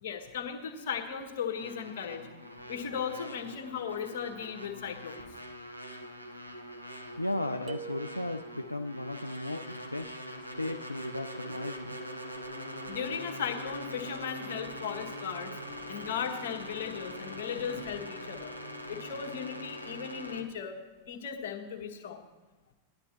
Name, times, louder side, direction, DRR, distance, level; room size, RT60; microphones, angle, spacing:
voice 1, 0.0-2.3 2.7-5.2 12.9-15.6 15.9-18.5 18.9-20.8 21.1-22.2, left 7 dB, 55° left, 4 dB, 1.3 m, -37 dB
sound 1, 1.6-20.4, equal, 90° right, 0.8 m, -43 dB
voice 2, 7.2-10.1 10.6-12.0, left 1 dB, 85° left, 6 dB, 0.3 m, -35 dB
sound 2, 7.7-8.8, right 8 dB, 35° right, 0.8 m, -45 dB
17.0 x 11.5 x 2.9 m, 1.2 s
figure-of-eight pair, 90°, 0 cm